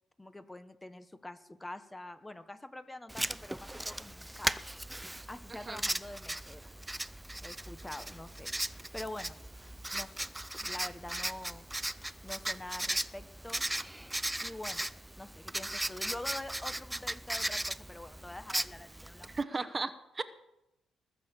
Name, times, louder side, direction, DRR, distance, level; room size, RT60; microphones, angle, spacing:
voice 1, 0.2-4.6 5.3-6.7 7.4-9.4 9.9-10.3 10.6-11.7 12.2-13.6 14.4-14.9 15.2-19.7, left 1 dB, 15° left, 12 dB, 0.9 m, -45 dB
Writing, 3.1-19.4, right 1 dB, 10° right, 0.4 m, -37 dB
voice 2, 5.5-5.8 19.3-20.2, right 3 dB, 30° right, 11 dB, 0.9 m, -35 dB
20.0 x 6.8 x 7.3 m, 0.88 s
cardioid pair, 90°, 0 cm